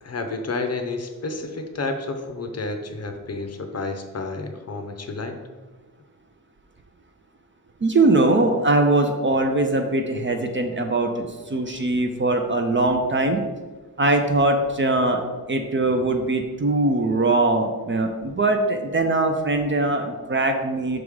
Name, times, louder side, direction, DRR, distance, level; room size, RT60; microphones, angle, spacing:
voice 1, 0.0-5.4, left 3 dB, 40° left, 6 dB, 0.6 m, -30 dB
voice 2, 7.8-13.4 14.0-15.2 15.5-21.0, right 2 dB, 30° right, 5 dB, 0.5 m, -21 dB
6.1 x 3.6 x 4.8 m, 1.3 s
wide cardioid pair, 150°, 38 cm